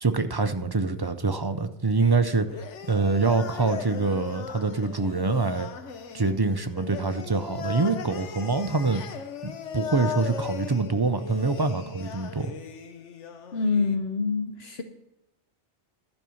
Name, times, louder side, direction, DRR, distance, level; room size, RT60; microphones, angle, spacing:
voice 1, 0.0-2.5 2.9-5.7 6.1-9.0 9.4-12.5, right 3 dB, 40° right, 9 dB, 0.3 m, -25 dB
sound 1, 2.0-14.0, left 7 dB, 90° left, 1.1 m, -38 dB
voice 2, 13.5-14.8, left 4 dB, 65° left, 7 dB, 1.0 m, -26 dB
12.0 x 5.4 x 7.0 m, 0.90 s
omnidirectional pair, 1.2 m